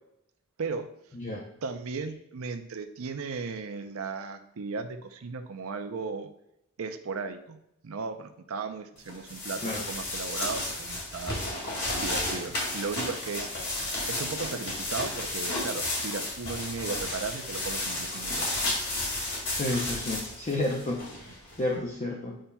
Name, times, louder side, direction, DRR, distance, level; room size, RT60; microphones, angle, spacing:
voice 1, 1.6-6.3 6.8-7.6 7.8-11.4 12.0-13.5 14.1-18.6, right 4 dB, 75° right, 8 dB, 0.5 m, -36 dB
sound 1, 9.1-21.6, left 2 dB, 50° left, 2.3 m, -32 dB
voice 2, 19.6-22.4, left 1 dB, 35° left, -1 dB, 0.7 m, -31 dB
8.8 x 5.5 x 2.3 m, 0.83 s
head